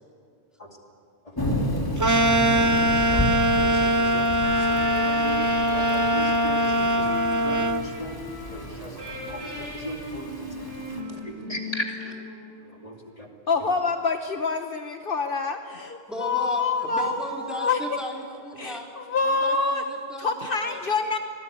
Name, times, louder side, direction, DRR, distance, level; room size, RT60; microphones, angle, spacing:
Thunder / Rain, 1.4-11.0, equal, 20° left, 2.9 m, -32 dB
sound 1, 2.0-7.8, equal, 20° right, 0.7 m, -22 dB
voice 1, 2.6-7.1 7.4-8.2 8.5-12.1 12.6-13.3 13.6-13.7, equal, 35° left, 1 dB, 2.6 m, -38 dB
sound 2, 4.4-12.9, left 1 dB, 70° right, 7.6 m, -38 dB
voice 2, 13.5-17.2 17.5-17.8 18.6-19.8 20.2-21.2, left 4 dB, 60° left, 6 dB, 1.2 m, -26 dB
voice 3, 16.1-18.9 19.2-20.8, left 1 dB, ahead, -1 dB, 3.6 m, -36 dB
25.0 x 19.0 x 9.5 m, 2.3 s
omnidirectional pair, 1.1 m